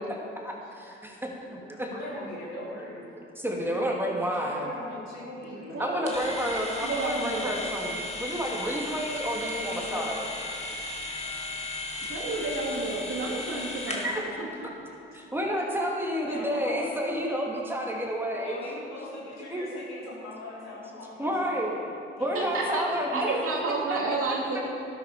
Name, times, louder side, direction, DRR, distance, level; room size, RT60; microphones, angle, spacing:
voice 1, 0.0-1.9 3.4-4.7 5.8-10.3 14.0-14.2 15.1-18.6 19.5-19.6 21.2-21.8 22.2-23.3 23.9-24.0, equal, 5° right, -2 dB, 3.0 m, -30 dB
voice 2, 1.9-3.1 4.4-6.3 9.4-10.3 12.5-12.9 15.3-15.4 16.3-16.9 18.4-21.9 22.2-22.5 22.9-23.2, left 2 dB, 60° left, -5 dB, 3.9 m, -40 dB
voice 3, 5.7-7.6 12.1-14.5 22.3-24.7, right 3 dB, 45° right, -2 dB, 2.6 m, -31 dB
sound 1, 6.1-14.2, left 2 dB, 20° left, 2.4 m, -35 dB
13.0 x 12.0 x 5.2 m, 2.8 s
figure-of-eight pair, 45°, 30 cm